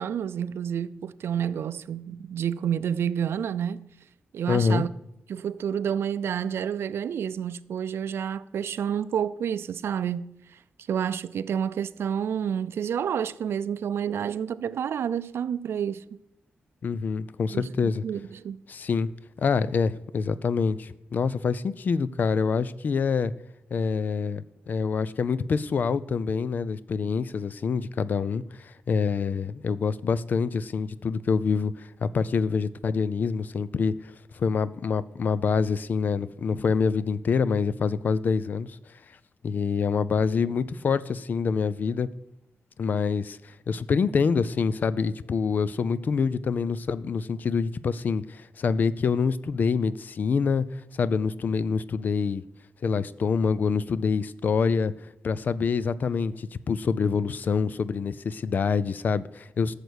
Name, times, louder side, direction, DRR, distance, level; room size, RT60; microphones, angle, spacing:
voice 1, 0.0-3.8 4.3-4.9 5.3-10.3 10.9-16.0 17.5-18.6, right 8 dB, 85° right, 0.5 m, -29 dB
voice 2, 4.5-4.8 16.8-18.0 18.7-19.1 19.4-23.3 23.7-33.9 34.3-38.7 39.4-42.1 42.8-50.7 50.9-52.4 52.8-54.9 55.2-59.7, left 5 dB, 45° left, 0.4 m, -26 dB
14.0 x 6.6 x 8.0 m
wide cardioid pair, 180°, 4 cm